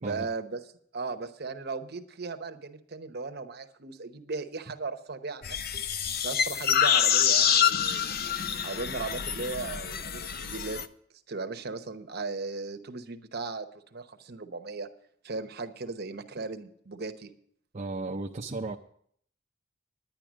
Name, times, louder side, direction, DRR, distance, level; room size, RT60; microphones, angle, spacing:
voice 1, 0.0-5.8 6.2-8.2 8.6-10.8 11.3-14.9 15.2-17.3, right 3 dB, 55° right, 8 dB, 0.9 m, -37 dB
sound 1, 5.4-10.9, left 8 dB, 50° left, 0.6 m, -26 dB
voice 2, 17.7-18.8, right 3 dB, 35° right, 0 dB, 0.6 m, -34 dB
10.5 x 10.0 x 6.2 m, 0.64 s
head